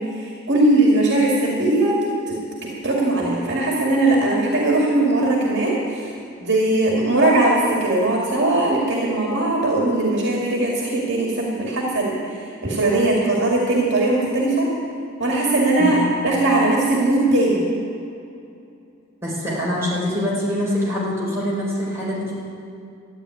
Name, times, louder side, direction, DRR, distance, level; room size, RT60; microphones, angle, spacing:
voice 1, 0.0-6.1 6.4-14.7 15.2-16.0 16.2-17.6, right 2 dB, 55° right, -2 dB, 2.4 m, -20 dB
voice 2, 19.2-22.3, left 1 dB, 15° right, -7 dB, 4.6 m, -24 dB
13.0 x 9.2 x 9.6 m, 2.5 s
head